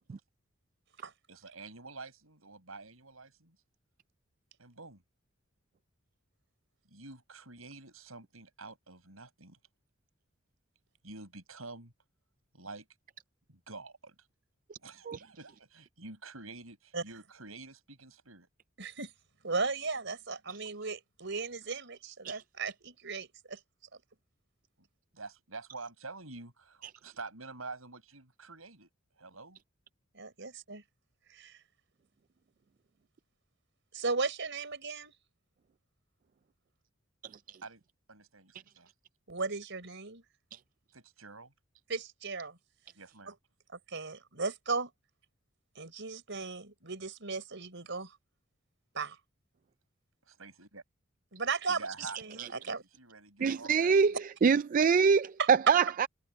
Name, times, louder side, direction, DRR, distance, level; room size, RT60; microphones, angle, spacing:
voice 1, 1.3-3.6 4.6-5.0 6.8-9.6 11.0-11.9 12.5-12.9 13.5-14.1 14.8-18.5 25.1-28.9 29.2-29.6 37.6-37.8 38.1-38.9 40.9-41.5 42.9-43.4 50.3-50.8 51.7-54.2, right 3 dB, 85° right, 7.8 m, -48 dB
voice 2, 18.8-19.1 19.4-23.6 30.1-30.8 31.3-31.6 33.9-35.1 39.3-40.2 41.9-42.6 43.7-44.9 45.8-48.2 48.9-49.2 51.3-52.8 55.4-55.5, right 4 dB, 60° right, 5.6 m, -36 dB
voice 3, 53.4-54.1 54.4-56.1, right 6 dB, 40° right, 0.3 m, -24 dB
head